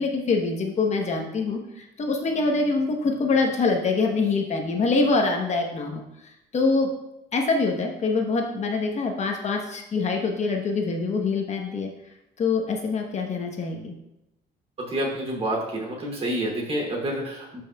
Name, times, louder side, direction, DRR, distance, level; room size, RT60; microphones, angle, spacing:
voice 1, 0.0-6.9 7.3-11.9 12.4-13.9, left 3 dB, 40° left, 2 dB, 1.0 m, -25 dB
voice 2, 14.8-17.6, right 1 dB, 35° right, -1 dB, 2.8 m, -28 dB
12.0 x 5.5 x 2.3 m, 0.89 s
cardioid pair, 110°, 17 cm